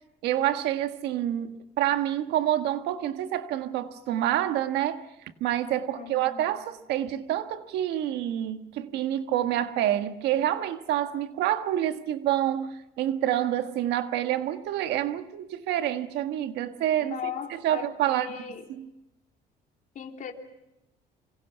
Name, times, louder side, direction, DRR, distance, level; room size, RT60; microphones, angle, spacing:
voice 1, 0.2-5.0 5.4-17.2 17.5-18.4 18.8-18.9, right 12 dB, 85° right, 1.5 m, -27 dB
voice 2, 5.9-6.6 17.0-18.6 19.9-20.3, left 7 dB, 50° left, 3.0 m, -38 dB
27.0 x 25.5 x 5.7 m
cardioid pair, 110°, 17 cm